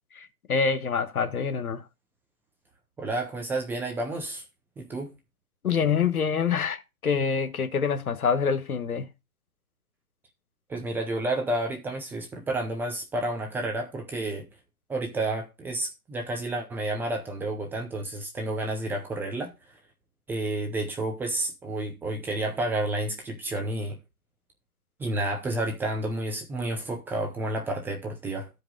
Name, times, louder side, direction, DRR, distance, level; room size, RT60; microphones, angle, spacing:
voice 1, 0.1-1.8 5.6-9.1, left 6 dB, 80° left, 1.4 m, -26 dB
voice 2, 3.0-4.4 4.8-5.1 10.7-14.5 14.9-19.5 20.3-24.0 25.0-28.5, right 2 dB, 5° right, 0.6 m, -30 dB
13.0 x 5.0 x 3.8 m
hypercardioid pair, 140°, 43 cm